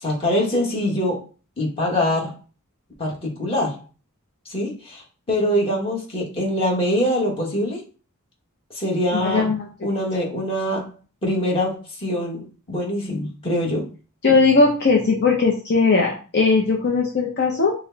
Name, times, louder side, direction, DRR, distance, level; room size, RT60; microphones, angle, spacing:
voice 1, 0.0-1.2 1.6-2.3 3.0-3.8 4.4-5.0 5.3-7.8 8.7-9.5 9.8-10.9 11.2-12.4 12.7-13.9, left 1 dB, 25° left, -3 dB, 1.3 m, -23 dB
voice 2, 9.1-9.7 14.2-17.7, left 4 dB, 50° left, -1 dB, 0.7 m, -18 dB
4.6 x 2.2 x 3.9 m, 0.36 s
head